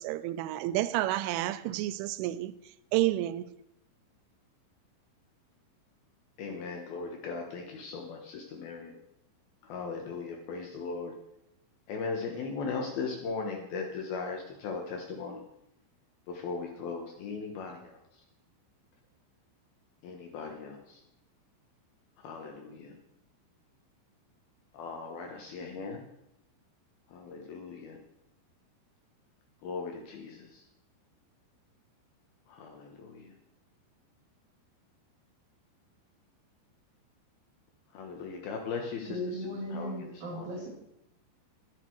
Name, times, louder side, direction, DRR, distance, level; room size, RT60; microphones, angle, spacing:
voice 1, 0.0-2.5 2.9-3.5, right 15 dB, 85° right, 3.1 m, -30 dB
voice 2, 6.4-9.0 9.6-11.1 11.9-15.4 16.3-18.2 20.0-21.0 22.2-22.9 24.7-26.0 27.1-28.0 29.6-30.7 32.5-33.3 37.9-40.5, left 4 dB, 70° left, 2.5 m, -38 dB
voice 3, 39.1-40.7, equal, 45° right, 3.7 m, -37 dB
12.0 x 11.0 x 4.6 m
omnidirectional pair, 5.6 m